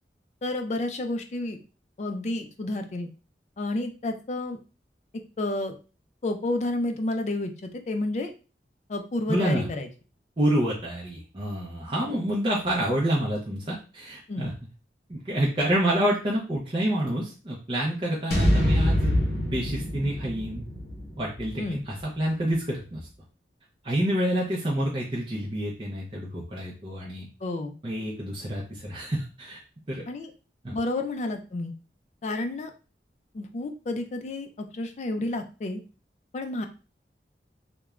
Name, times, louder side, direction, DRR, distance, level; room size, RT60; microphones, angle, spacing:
voice 1, 0.4-1.6 2.0-3.1 3.6-4.6 5.4-5.7 6.2-8.3 8.9-9.9 14.3-14.5 21.6-21.8 27.4-27.7 30.1-30.3 30.7-31.7 32.2-32.7 33.3-35.8 36.3-36.7, left 2 dB, 40° left, 6 dB, 0.3 m, -30 dB
voice 2, 9.3-9.7 10.4-14.5 15.1-20.6 21.2-23.0 23.8-27.3 27.8-29.6 29.9-30.0 30.6-30.8, right 1 dB, 30° right, -4 dB, 0.5 m, -28 dB
sound 1, 18.3-22.5, equal, 60° left, 0.7 m, -26 dB
3.0 x 2.1 x 2.3 m, 0.34 s
head